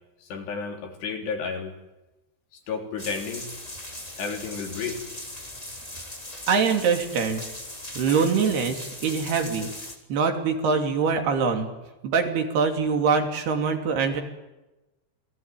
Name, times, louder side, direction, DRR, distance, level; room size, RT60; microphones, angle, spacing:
voice 1, 0.3-1.7 2.7-3.5 4.2-5.0, left 5 dB, 90° left, 3 dB, 5.7 m, -31 dB
sound 1, 3.0-10.0, left 1 dB, 10° left, 2.8 m, -39 dB
voice 2, 6.5-7.4 8.0-9.7 10.1-11.7 12.0-14.2, right 5 dB, 75° right, 4 dB, 4.9 m, -23 dB
27.5 x 20.0 x 9.2 m, 1.0 s
omnidirectional pair, 4.7 m